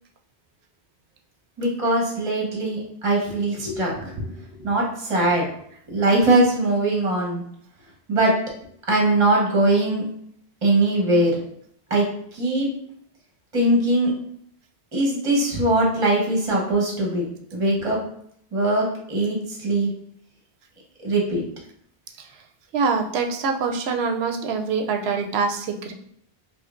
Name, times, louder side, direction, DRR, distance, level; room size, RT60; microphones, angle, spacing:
voice 1, 1.6-4.2 4.6-5.4 5.9-7.4 8.1-8.3 8.9-10.0 10.6-11.4 11.9-12.1 12.3-12.7 13.5-14.1 14.9-17.3 17.5-18.0 18.5-19.9 21.0-21.4, right 2 dB, 30° right, -2 dB, 1.0 m, -21 dB
voice 2, 22.7-25.9, right 5 dB, 80° right, 4 dB, 0.8 m, -24 dB
5.1 x 2.2 x 2.5 m, 0.67 s
omnidirectional pair, 1.1 m